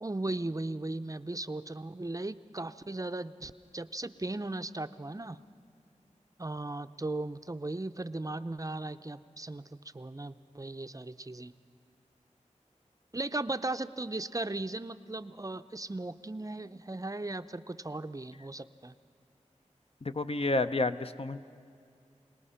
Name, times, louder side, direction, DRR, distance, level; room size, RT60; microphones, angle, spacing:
voice 1, 0.0-5.4 6.4-11.5 13.1-19.0, right 2 dB, 25° right, 12 dB, 0.5 m, -37 dB
voice 2, 20.0-21.4, left 2 dB, 50° left, 10 dB, 0.6 m, -30 dB
26.5 x 19.0 x 5.7 m, 2.3 s
wide cardioid pair, 50°, 13 cm